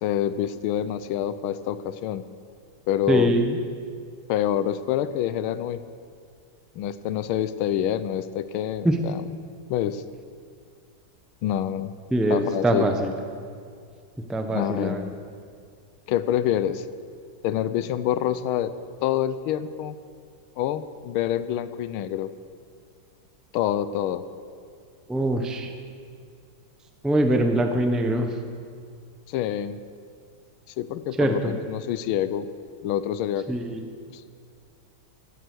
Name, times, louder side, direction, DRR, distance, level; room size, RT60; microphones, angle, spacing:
voice 1, 0.0-2.2 2.9-3.3 4.3-5.8 6.8-9.3 9.7-10.0 11.4-12.0 12.3-12.9 14.5-15.0 16.1-16.9 17.4-18.7 19.0-20.0 20.6-22.3 23.5-24.3 29.3-29.8 30.8-32.5 32.8-33.5 34.1-34.2, left 11 dB, 90° left, 13 dB, 1.5 m, -26 dB
voice 2, 3.1-3.6 8.8-9.0 12.1-13.1 14.3-15.0 25.1-25.7 27.0-28.3 31.2-31.5 33.5-33.8, right 1 dB, ahead, 5 dB, 0.4 m, -23 dB
16.0 x 12.5 x 6.2 m, 2.2 s
omnidirectional pair, 2.2 m